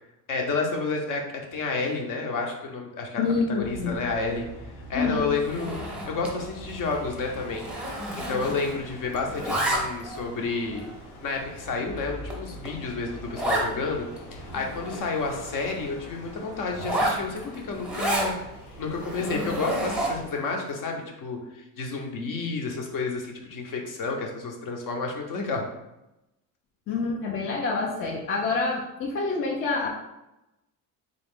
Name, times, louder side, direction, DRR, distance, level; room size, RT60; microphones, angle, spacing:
voice 1, 0.3-1.2 1.5-4.5 4.9-5.8 6.1-7.7 8.2-10.9 11.2-18.3 18.8-25.7, left 4 dB, 60° left, 2 dB, 0.8 m, -30 dB
voice 2, 3.2-3.9 4.9-5.3 26.9-29.9, left 4 dB, 35° left, 0 dB, 0.4 m, -27 dB
sound 1, 3.6-20.3, equal, 80° left, 1.1 m, -43 dB
Zipper (clothing), 5.4-6.4 6.7-6.9 7.2-8.9 9.1-10.2 10.8-10.9 11.5-11.6 12.0-12.1 12.3-12.4 12.6-12.8 13.3-13.7 14.2-14.3 14.5-15.8 16.7-18.3 18.9-20.3, right 1 dB, 5° right, 0.7 m, -30 dB
3.8 x 2.4 x 3.5 m, 0.92 s
cardioid pair, 140°, 36 cm